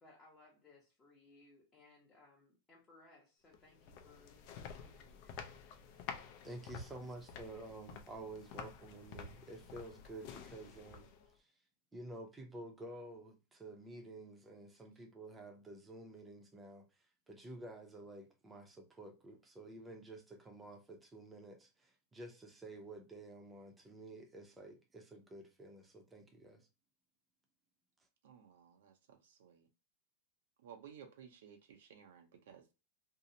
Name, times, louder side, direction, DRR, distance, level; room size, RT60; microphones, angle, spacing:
voice 1, 0.0-4.3 4.6-5.5, left 2 dB, 20° left, 0.8 m, -64 dB
sound 1, 3.5-11.3, left 6 dB, 50° left, 0.4 m, -50 dB
voice 2, 6.4-11.1 11.9-16.8 17.3-26.7, right 2 dB, 10° right, 0.6 m, -51 dB
voice 3, 28.2-29.7 30.6-32.7, right 8 dB, 80° right, 0.6 m, -57 dB
2.7 x 2.0 x 2.6 m
supercardioid pair, 135°, 0 cm